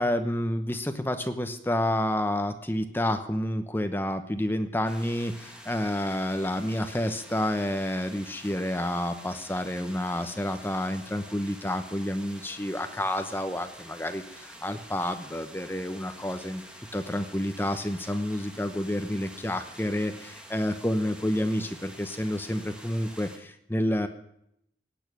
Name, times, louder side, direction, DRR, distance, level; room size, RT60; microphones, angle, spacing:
voice 1, 0.0-16.6 16.9-24.1, left 1 dB, 10° left, 8 dB, 0.9 m, -29 dB
sound 1, 4.8-23.4, equal, 5° right, 1.6 m, -48 dB
17.5 x 9.1 x 6.1 m, 0.74 s
head